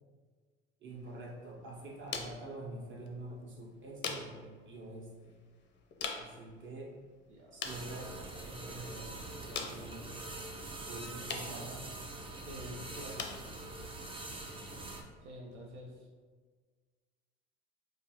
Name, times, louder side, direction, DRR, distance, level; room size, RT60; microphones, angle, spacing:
voice 1, 0.8-5.4 6.1-6.9 7.5-10.1 10.9-11.8 12.6-13.3, right 2 dB, 35° right, -3 dB, 1.0 m, -46 dB
sound 1, 0.9-15.9, left 5 dB, 30° left, 0.5 m, -47 dB
voice 2, 7.3-7.8 12.4-13.2 15.2-16.1, equal, 80° right, -1 dB, 0.6 m, -48 dB
sound 2, 7.6-15.0, right 2 dB, 15° right, 0.5 m, -44 dB
3.6 x 2.4 x 2.9 m, 1.5 s
hypercardioid pair, 65°, 35 cm